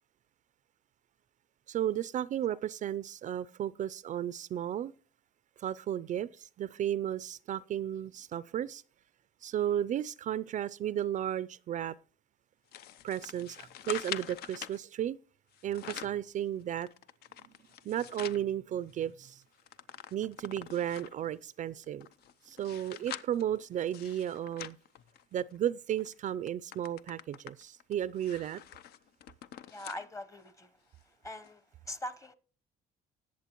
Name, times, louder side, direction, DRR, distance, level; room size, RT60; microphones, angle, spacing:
voice 1, 1.7-4.9 5.6-8.8 9.4-12.0 13.0-15.2 15.6-16.9 17.8-19.4 20.1-22.1 22.5-24.8 25.3-28.6, right 10 dB, 45° right, 0.4 m, -34 dB
sound 1, 12.7-14.8 15.5-16.2 16.7-18.4 18.9-19.0 19.2-21.3 21.8-25.6 26.0-26.2 26.5-30.1 30.5-30.6 31.4-31.5, left 11 dB, 70° left, 0.6 m, -45 dB
voice 2, 29.7-30.7 31.2-32.3, left 1 dB, 20° left, 0.9 m, -42 dB
19.5 x 7.4 x 3.0 m
cardioid pair, 110°, 17 cm